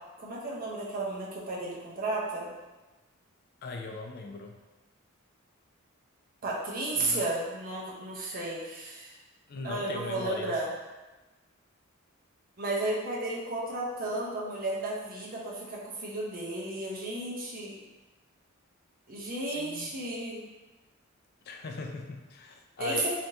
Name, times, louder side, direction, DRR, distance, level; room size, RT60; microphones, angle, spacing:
voice 1, 0.2-2.5 6.4-9.2 9.6-10.7 12.6-17.8 19.1-20.4 22.8-23.1, right 2 dB, 40° right, -4 dB, 0.7 m, -33 dB
voice 2, 3.6-4.6 6.9-7.2 9.5-10.6 19.5-20.0 21.5-23.1, left 3 dB, 50° left, 3 dB, 0.4 m, -39 dB
3.3 x 2.8 x 2.7 m, 1.1 s
head